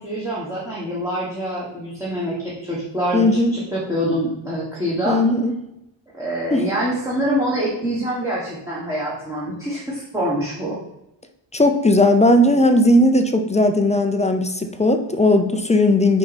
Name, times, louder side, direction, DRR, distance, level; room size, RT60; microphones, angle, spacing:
voice 1, 0.0-3.3 3.5-5.2 6.1-10.8, equal, 5° right, -7 dB, 1.2 m, -25 dB
voice 2, 3.1-3.6 5.0-5.5 6.5-6.7 11.5-16.2, left 1 dB, 15° left, 6 dB, 0.4 m, -17 dB
6.2 x 4.7 x 4.1 m, 0.87 s
wide cardioid pair, 160°, 45 cm